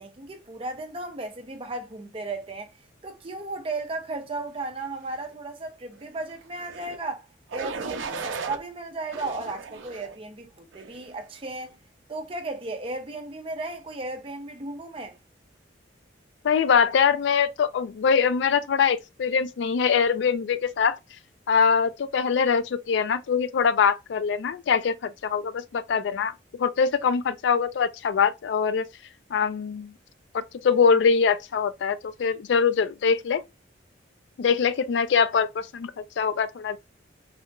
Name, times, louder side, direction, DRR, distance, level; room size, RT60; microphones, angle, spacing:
voice 1, 0.0-2.7 3.0-11.8 12.1-15.2, right 2 dB, 30° right, 0.5 m, -35 dB
sound 1, 6.6-7.0 7.5-8.6 9.1-10.1 10.7-11.1, right 4 dB, 85° right, 0.5 m, -35 dB
voice 2, 16.4-21.0 21.5-26.3 26.6-28.9 29.3-29.9 30.3-33.4 34.4-36.8, left 6 dB, 70° left, 0.3 m, -23 dB
3.4 x 2.8 x 2.2 m
head